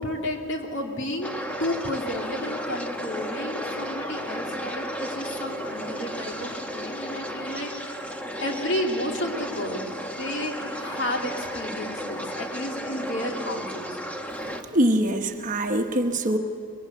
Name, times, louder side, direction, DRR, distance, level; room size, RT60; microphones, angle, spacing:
voice 1, 0.0-1.3 1.6-7.7 8.4-14.0, left 1 dB, 55° left, 2 dB, 2.6 m, -32 dB
sound 1, 1.2-14.6, equal, 5° left, 1.1 m, -33 dB
voice 2, 14.7-16.4, right 1 dB, 35° right, 5 dB, 1.1 m, -23 dB
24.0 x 21.5 x 8.1 m, 2.5 s
head